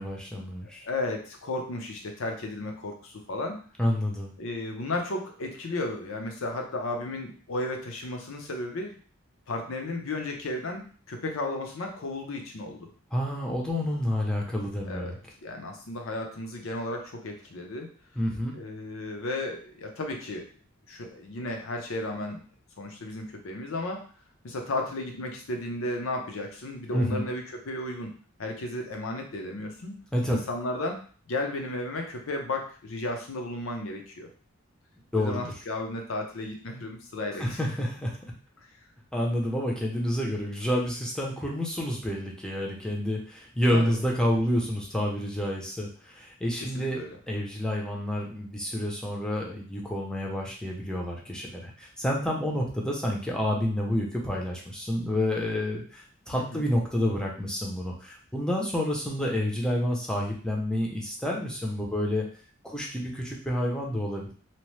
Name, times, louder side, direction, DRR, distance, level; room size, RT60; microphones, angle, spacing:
voice 1, 0.0-0.9 3.8-4.3 13.1-15.2 18.2-18.5 26.9-27.2 30.1-30.4 35.1-35.4 37.4-38.2 39.1-62.3 62.6-64.3, left 1 dB, 5° left, -2 dB, 0.6 m, -29 dB
voice 2, 0.9-3.6 4.4-9.0 9.5-12.9 14.9-15.1 15.4-17.9 18.5-20.5 20.9-22.4 22.8-24.0 24.4-28.1 28.4-30.0 30.3-34.3 35.1-37.6 38.6-38.7 43.7-44.0 46.6-47.2 56.3-56.6, left 2 dB, 70° left, 3 dB, 0.6 m, -34 dB
2.8 x 2.0 x 3.1 m, 0.43 s
head